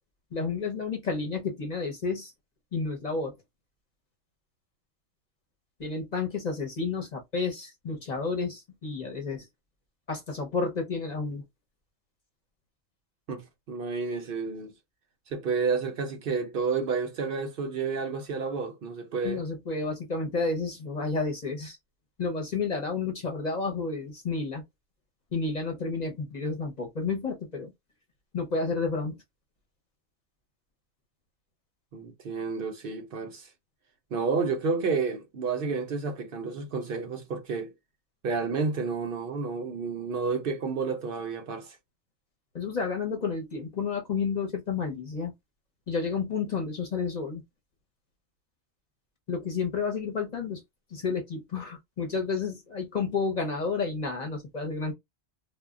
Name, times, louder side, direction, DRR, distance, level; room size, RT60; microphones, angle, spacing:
voice 1, 0.3-2.3 2.7-3.3 5.8-9.5 10.1-11.4 19.2-21.8 22.2-24.6 25.3-27.7 28.3-29.2 42.5-45.3 45.9-47.4 49.3-50.6 50.9-54.9, left 4 dB, 45° left, 0.7 m, -31 dB
voice 2, 13.3-14.7 15.3-19.4 31.9-33.5 34.1-37.7 38.2-41.8, right 4 dB, 60° right, 0.7 m, -30 dB
2.1 x 2.0 x 3.5 m
omnidirectional pair, 1.1 m